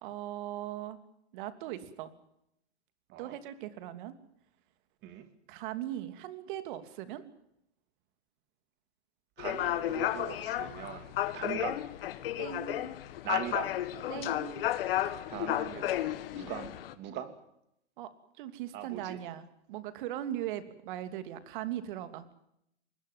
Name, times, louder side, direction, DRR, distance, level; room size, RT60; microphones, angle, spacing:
voice 1, 0.0-1.0 1.3-2.1 3.2-4.1 5.5-7.2 11.5-11.6 12.4-12.8 14.1-14.5 18.0-18.1 18.4-22.2, right 12 dB, 45° right, 11 dB, 3.0 m, -39 dB
sound 1, 9.4-16.9, left 13 dB, 55° left, 1.9 m, -33 dB
voice 2, 9.4-11.8 13.2-13.7 15.3-15.9 16.3-17.3 18.7-19.2, right 10 dB, 30° right, 10 dB, 2.8 m, -40 dB
25.0 x 21.5 x 7.6 m, 0.77 s
hypercardioid pair, 130°, 34 cm